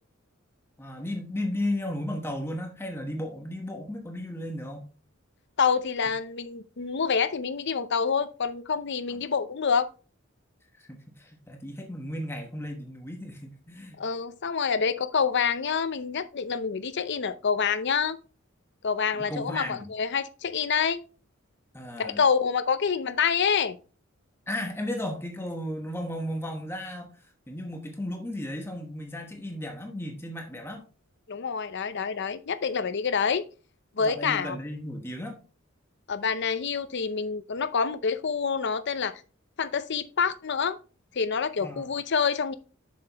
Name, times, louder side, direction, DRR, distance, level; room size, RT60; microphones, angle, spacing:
voice 1, 0.8-4.9 10.8-14.0 19.2-19.8 21.7-22.2 24.5-27.1 27.5-30.8 34.0-35.4 41.6-41.9, left 1 dB, 10° left, 1.1 m, -34 dB
voice 2, 5.6-9.9 14.0-18.2 18.8-21.0 22.0-23.8 31.3-33.4 34.0-34.6 36.1-39.1 39.6-40.8 41.1-42.5, left 6 dB, 60° left, 0.6 m, -27 dB
7.3 x 6.8 x 2.9 m
head